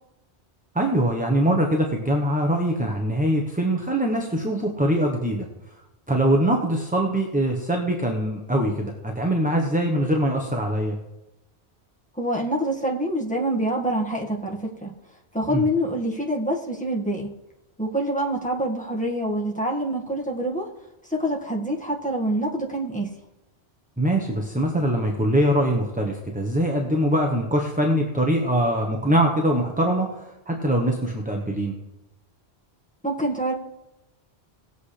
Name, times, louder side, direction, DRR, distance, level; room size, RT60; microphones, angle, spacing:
voice 1, 0.7-5.4 6.1-11.0 15.5-15.6 24.0-30.1 30.5-31.7, right 1 dB, 10° right, 1 dB, 1.0 m, -23 dB
voice 2, 12.2-14.9 15.3-17.3 17.8-20.7 21.1-23.1 33.0-33.5, right 1 dB, 5° left, -4 dB, 1.7 m, -26 dB
18.5 x 8.1 x 3.3 m, 0.97 s
omnidirectional pair, 1.1 m